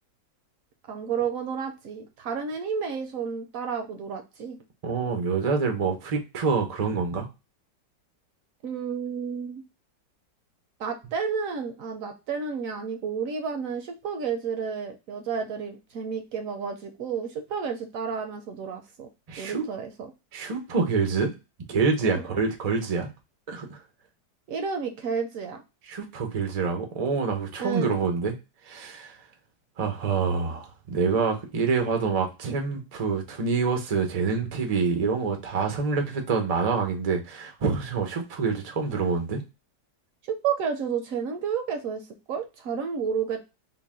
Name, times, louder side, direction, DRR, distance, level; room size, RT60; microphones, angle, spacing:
voice 1, 0.9-4.6 8.6-9.6 10.8-19.1 19.4-20.1 22.0-22.2 24.5-25.6 27.6-28.0 40.3-42.0 42.3-43.4, right 6 dB, 70° right, 6 dB, 0.8 m, -31 dB
voice 2, 4.8-7.3 19.3-19.6 20.3-21.3 21.7-23.1 23.5-23.8 25.9-28.3 28.7-29.1 29.8-39.4, right 5 dB, 90° right, 4 dB, 0.3 m, -26 dB
3.9 x 2.1 x 3.5 m, 0.27 s
omnidirectional pair, 1.9 m